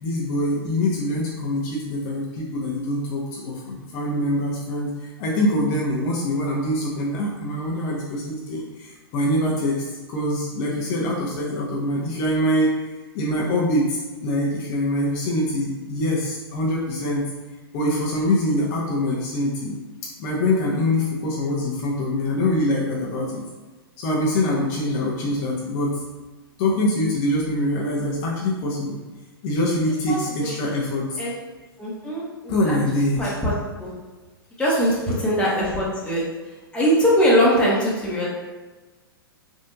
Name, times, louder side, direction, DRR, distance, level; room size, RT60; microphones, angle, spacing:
voice 1, 0.0-12.7 13.1-17.2 17.7-19.7 20.2-23.4 24.0-26.0 26.6-29.0 29.4-31.2 32.5-33.3, left 1 dB, 45° left, -5 dB, 0.7 m, -24 dB
voice 2, 30.1-30.5 31.2-31.3 31.8-33.5 33.8-33.9 34.6-36.2 36.7-38.3, equal, 10° left, -6 dB, 1.0 m, -22 dB
3.4 x 2.6 x 2.7 m, 1.3 s
hypercardioid pair, 110°, 13 cm